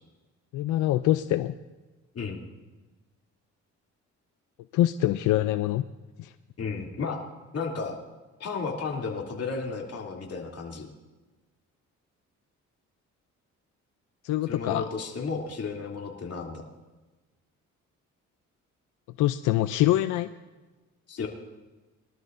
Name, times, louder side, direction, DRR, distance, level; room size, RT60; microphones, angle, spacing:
voice 1, 0.5-1.5 4.7-5.9 6.2-6.3 14.2-14.9 19.2-20.3, left 14 dB, 90° left, 11 dB, 0.5 m, -24 dB
voice 2, 6.6-7.2 7.5-7.9 8.4-10.9 14.5-16.6 21.1-21.3, left 4 dB, 55° left, -1 dB, 2.9 m, -33 dB
23.0 x 12.5 x 2.6 m, 1.2 s
cardioid pair, 90°, 30 cm